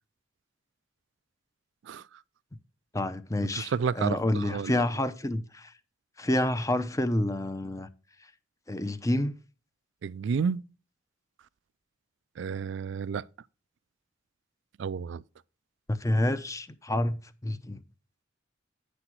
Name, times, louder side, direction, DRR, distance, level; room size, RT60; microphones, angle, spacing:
voice 1, 2.9-5.7 6.2-7.9 8.7-9.3 15.9-17.8, left 1 dB, 15° left, 0.6 m, -28 dB
voice 2, 3.5-4.7 10.0-10.6 12.4-13.2 14.8-15.2, right 6 dB, 60° right, 0.3 m, -31 dB
9.8 x 9.1 x 3.1 m
head